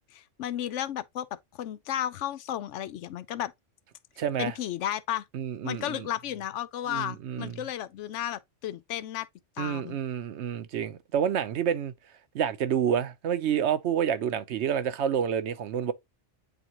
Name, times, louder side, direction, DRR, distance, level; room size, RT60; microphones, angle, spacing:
voice 1, 0.1-1.3 1.5-3.5 4.4-5.2 5.6-9.3 9.6-10.0, left 11 dB, 80° left, 0.9 m, -33 dB
voice 2, 4.2-4.5 5.3-6.1 6.9-7.6 9.6-11.9 12.3-15.9, right 8 dB, 70° right, 1.0 m, -28 dB
9.0 x 3.6 x 2.9 m
omnidirectional pair, 1.2 m